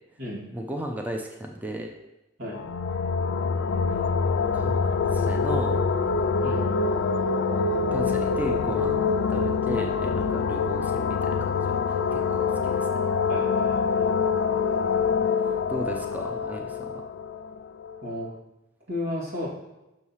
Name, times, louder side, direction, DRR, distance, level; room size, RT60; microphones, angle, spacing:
voice 1, 0.5-1.9 4.5-4.8 5.0-5.9 7.9-12.9 15.7-17.0, right 1 dB, 10° right, 1 dB, 0.5 m, -35 dB
sound 1, 2.5-18.1, left 5 dB, 65° left, 0.4 m, -25 dB
voice 2, 13.3-14.1 18.0-18.3 18.9-19.5, left 1 dB, 90° right, -7 dB, 2.3 m, -33 dB
6.3 x 3.1 x 5.5 m, 0.97 s
head